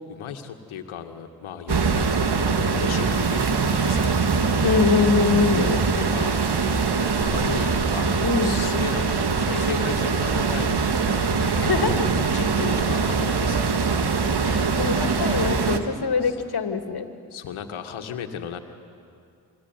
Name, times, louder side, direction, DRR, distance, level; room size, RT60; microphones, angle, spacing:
voice 1, 0.0-4.2 5.5-6.4 7.0-11.7 12.3-14.0 15.1-15.4 16.2-16.4 17.3-18.6, left 7 dB, 80° left, 6 dB, 2.1 m, -35 dB
sound 1, 1.7-15.8, right 4 dB, 55° right, 2.1 m, -23 dB
voice 2, 4.6-5.6 8.2-8.6 11.6-12.0 14.4-17.1, left 5 dB, 50° left, 7 dB, 2.7 m, -23 dB
28.5 x 21.0 x 9.4 m, 2.4 s
supercardioid pair, 40°, 48 cm